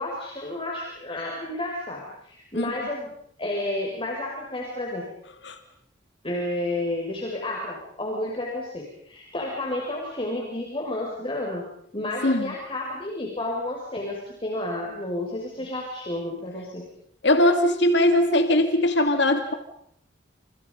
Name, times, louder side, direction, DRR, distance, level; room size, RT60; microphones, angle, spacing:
voice 1, 0.0-3.1 3.4-5.1 6.2-11.7 11.9-16.9, left 1 dB, 30° left, -2 dB, 6.0 m, -31 dB
voice 2, 12.2-12.5 17.2-19.5, left 1 dB, 70° left, 7 dB, 2.4 m, -20 dB
29.5 x 29.5 x 5.4 m, 0.69 s
head